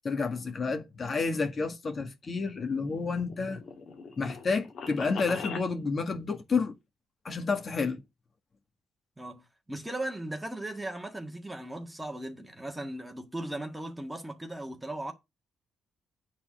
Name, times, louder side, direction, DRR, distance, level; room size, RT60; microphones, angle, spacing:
voice 1, 0.0-3.6 4.2-6.7 7.2-8.0, left 4 dB, 40° left, 1.6 m, -30 dB
sound 1, 2.6-5.7, left 5 dB, 60° left, 1.8 m, -41 dB
voice 2, 9.2-15.1, right 1 dB, 10° right, 1.7 m, -37 dB
9.1 x 4.2 x 6.3 m
cardioid pair, 90°, 0 cm